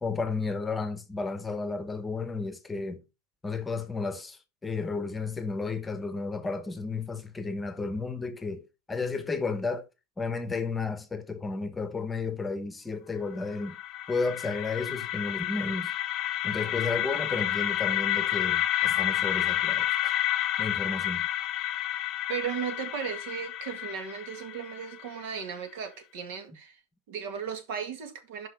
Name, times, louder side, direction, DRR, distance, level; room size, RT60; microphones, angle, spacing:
voice 1, 0.0-3.0 3.4-8.6 8.9-9.8 10.2-13.8 14.1-15.9 16.4-20.2 20.6-21.3, left 4 dB, 10° left, 1.0 m, -32 dB
sound 1, 13.4-25.3, left 13 dB, 40° left, 0.8 m, -30 dB
voice 2, 22.3-26.8 27.1-28.5, right 7 dB, 70° right, 1.9 m, -36 dB
5.7 x 5.5 x 5.5 m
supercardioid pair, 135°, 0 cm